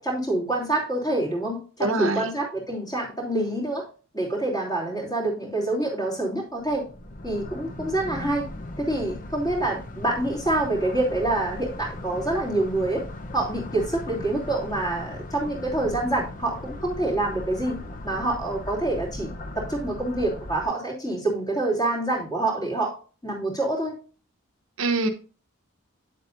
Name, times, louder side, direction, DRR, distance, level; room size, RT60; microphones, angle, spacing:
voice 1, 0.0-3.8 4.1-6.8 7.2-8.5 8.8-13.0 13.3-17.8 18.0-22.9 23.2-24.0, right 2 dB, 20° left, 3.0 m, -26 dB
voice 2, 1.8-2.3 24.8-25.1, right 2 dB, 75° right, 1.0 m, -24 dB
sound 1, 6.6-20.7, left 1 dB, 40° left, 0.8 m, -38 dB
9.3 x 7.5 x 2.6 m
head